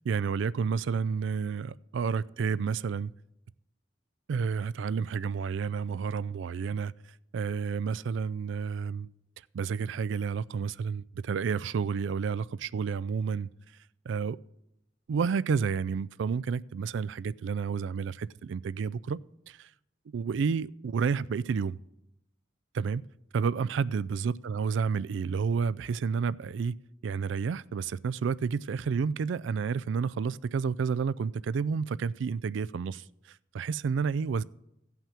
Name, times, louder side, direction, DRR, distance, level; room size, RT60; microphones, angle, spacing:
voice 1, 0.0-3.1 4.3-6.9 7.3-9.1 9.5-13.5 14.1-14.4 15.1-19.2 19.5-19.7 20.1-21.8 22.7-23.0 23.3-26.8 27.0-33.0 33.5-34.4, right 6 dB, 80° right, 0.3 m, -30 dB
15.0 x 5.8 x 7.3 m
head